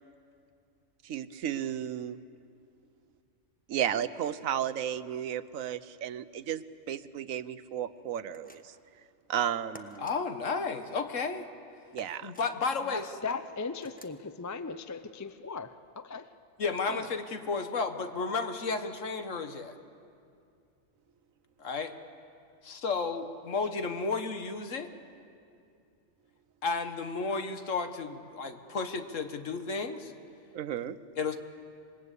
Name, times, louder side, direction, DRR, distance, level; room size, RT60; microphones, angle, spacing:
voice 1, 1.0-2.2 3.7-8.7 9.3-10.1 11.9-12.3 30.5-31.0, right 9 dB, 80° right, 14 dB, 1.2 m, -33 dB
sound 1, 8.3-8.9 9.7-10.2 12.0-12.5 13.8-14.2, left 1 dB, 5° left, 1.1 m, -51 dB
voice 2, 10.0-11.4 12.2-13.1 16.6-19.8 21.6-21.9 22.6-24.9 26.6-30.1 31.2-31.4, left 4 dB, 70° left, 8 dB, 1.7 m, -32 dB
voice 3, 12.9-16.3, left 4 dB, 25° left, 11 dB, 0.3 m, -38 dB
27.0 x 21.0 x 8.4 m, 2.4 s
omnidirectional pair, 1.4 m